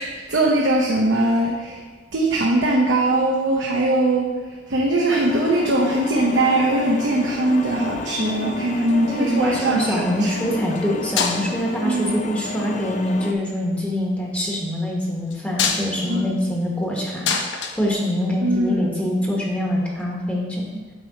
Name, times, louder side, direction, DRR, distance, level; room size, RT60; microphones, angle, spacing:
voice 1, 0.0-1.8 2.1-4.3 4.7-10.5 11.8-12.2 16.1-16.4 18.4-18.9, right 1 dB, 75° right, -2 dB, 0.8 m, -21 dB
sound 1, 5.1-13.3, left 3 dB, 40° left, 0.4 m, -31 dB
sound 2, 8.9-9.5 10.7-10.9 11.2-11.8 12.7-13.2 15.3-18.7 20.0-20.1, left 6 dB, 75° left, 0.6 m, -27 dB
voice 2, 9.1-17.4 17.8-20.6, equal, 10° left, -3 dB, 1.0 m, -24 dB
8.2 x 3.2 x 4.8 m, 1.4 s
head